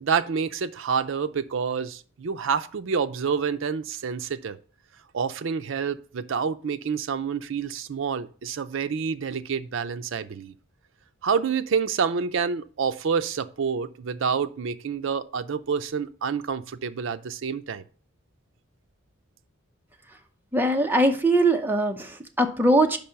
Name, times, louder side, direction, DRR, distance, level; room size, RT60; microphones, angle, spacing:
voice 1, 0.0-4.6 5.1-10.5 11.2-17.8, right 6 dB, 65° right, 11 dB, 0.4 m, -28 dB
voice 2, 20.5-23.0, right 1 dB, 10° right, 4 dB, 0.6 m, -21 dB
5.3 x 5.3 x 5.7 m, 0.42 s
head